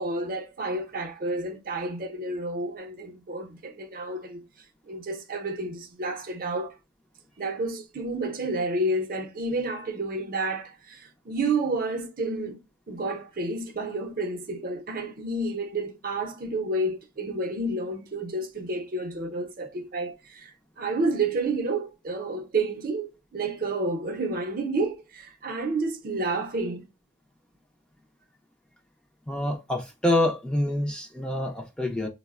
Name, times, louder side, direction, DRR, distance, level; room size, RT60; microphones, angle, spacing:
voice 1, 0.0-4.4 4.9-6.7 7.4-12.6 12.9-20.5 20.8-26.8, right 2 dB, 50° right, 0.6 m, -30 dB
voice 2, 29.3-32.1, left 1 dB, 5° left, 0.4 m, -26 dB
3.8 x 2.0 x 2.3 m
head